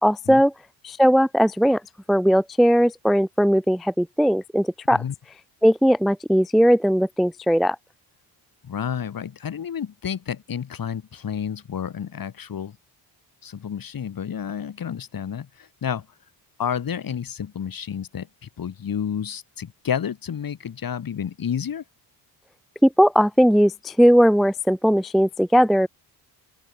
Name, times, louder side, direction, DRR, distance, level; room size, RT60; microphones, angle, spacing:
voice 1, 0.0-0.5 0.8-1.8 2.1-5.0 5.6-7.8 22.8-25.9, equal, ahead, 0.4 m, -18 dB
voice 2, 8.6-12.8 13.4-15.5 15.8-16.1 16.6-18.3 18.6-21.8, left 8 dB, 50° left, 2.8 m, -30 dB
open air
supercardioid pair, 65°, 44 cm